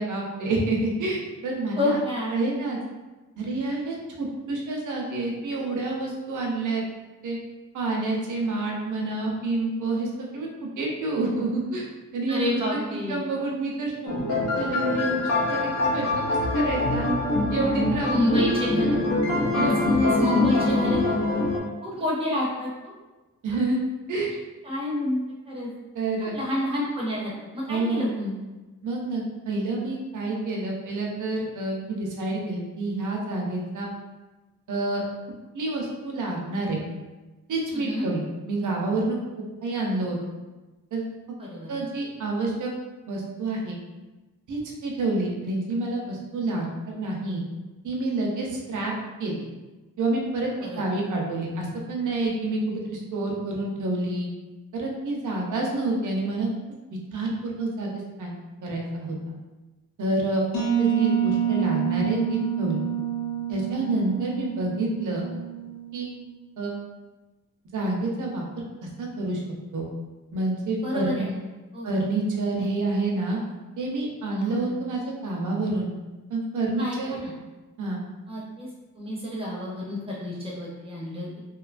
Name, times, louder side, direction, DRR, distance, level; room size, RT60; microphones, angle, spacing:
voice 1, 0.0-2.0 2.3-2.8 3.4-6.8 7.2-7.4 7.7-11.8 12.1-12.8 13.1-16.2 16.5-17.1 17.5-18.4 19.5-19.8 23.4-23.8 24.1-24.3 25.9-26.3 27.7-28.1 28.8-33.9 34.7-35.0 35.5-36.8 37.5-38.2 38.5-39.2 39.6-40.2 40.9-41.0 41.7-42.7 43.1-43.8 44.5-47.4 47.8-48.9 49.2-49.4 50.0-54.3 54.7-56.5 57.1-57.9 58.2-58.3 58.6-59.2 60.0-60.4 60.8-62.8 63.5-65.3 65.9-66.1 66.6-66.7 67.7-68.4 68.8-69.4 69.7-69.9 70.3-71.2 71.8-73.4 73.8-75.9 76.3-77.1 77.8-78.0, right 2 dB, 60° right, -1 dB, 0.6 m, -28 dB
voice 2, 1.8-2.3 12.3-13.2 18.0-19.0 19.5-21.0 21.3-21.4 21.8-22.9 24.6-25.2 25.5-25.7 26.3-28.4 37.7-38.1 41.4-41.7 50.6-50.8 70.8-71.4 71.7-71.9 72.6-72.7 74.3-74.7 76.8-77.3 78.3-78.7 79.0-81.4, left 1 dB, 15° right, -5 dB, 0.6 m, -28 dB
sound 1, 14.1-21.6, left 2 dB, 45° left, 0.5 m, -24 dB
sound 2, 60.5-66.1, right 10 dB, 90° left, 0.6 m, -27 dB
2.7 x 2.2 x 2.4 m, 1.2 s
wide cardioid pair, 160°, 34 cm